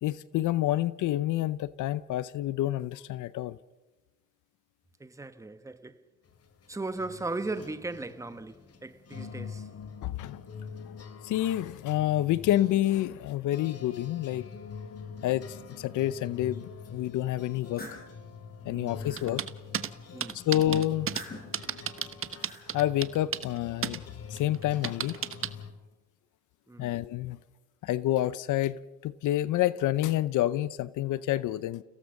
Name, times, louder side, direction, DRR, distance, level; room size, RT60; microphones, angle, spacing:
voice 1, 0.0-3.6 10.0-10.4 11.2-14.5 15.2-15.5 15.8-18.0 18.6-19.4 20.3-21.1 22.7-24.0 24.3-25.2 26.8-27.4 27.8-31.8, left 13 dB, 80° left, 0.7 m, -28 dB
voice 2, 5.0-6.0 6.7-9.7 18.7-19.2 20.1-20.4 26.7-26.9, right 2 dB, 10° right, 1.1 m, -37 dB
sound 1, 6.2-25.7, left 5 dB, 55° left, 2.7 m, -45 dB
sound 2, 17.4-18.1 18.6-19.3 20.9-21.6 22.2-22.7, left 2 dB, 30° left, 7.9 m, -46 dB
sound 3, 19.2-19.9 20.2-21.2 21.5-23.6 23.8-24.0 24.4-25.5, right 8 dB, 45° right, 1.1 m, -32 dB
30.0 x 17.0 x 6.5 m
cardioid pair, 90°, 30 cm